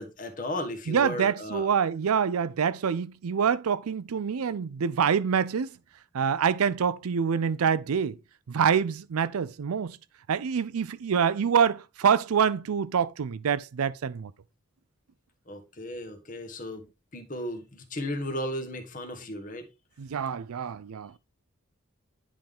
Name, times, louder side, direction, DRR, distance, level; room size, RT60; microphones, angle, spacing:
voice 1, 0.0-1.7 15.5-16.9 17.1-19.7, left 1 dB, 40° left, 1.2 m, -35 dB
voice 2, 0.9-5.7 6.1-8.2 8.5-10.0 10.3-14.3 20.0-21.1, right 7 dB, 90° right, 0.5 m, -26 dB
10.0 x 3.7 x 3.5 m
head